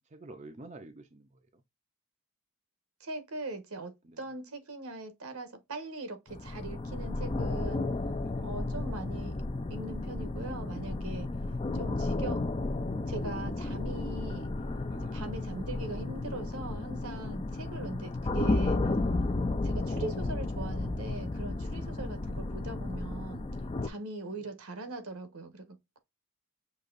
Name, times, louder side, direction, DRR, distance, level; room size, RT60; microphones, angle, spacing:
voice 1, 0.0-1.6 4.0-4.2 8.2-8.5 14.8-15.2 21.7-22.0 24.3-24.5, right 2 dB, 30° right, 0.5 m, -50 dB
voice 2, 3.0-7.9 8.4-9.4 9.7-11.3 11.7-12.4 13.1-14.5 15.1-18.8 19.6-23.5 23.8-26.0, right 2 dB, 80° right, 1.2 m, -41 dB
sound 1, 6.3-23.9, left 2 dB, 25° left, 0.4 m, -33 dB
6.6 x 2.8 x 2.5 m
head